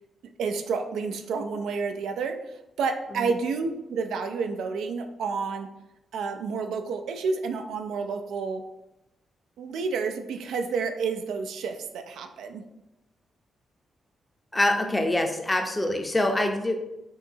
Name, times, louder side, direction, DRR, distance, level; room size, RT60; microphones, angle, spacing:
voice 1, 0.4-2.3 2.8-5.7 6.1-8.6 9.6-12.6, right 5 dB, 90° right, 6 dB, 0.4 m, -30 dB
voice 2, 14.5-17.0, left 1 dB, 15° left, 4 dB, 0.6 m, -25 dB
4.8 x 2.8 x 2.7 m, 0.90 s
cardioid pair, 90°, 0 cm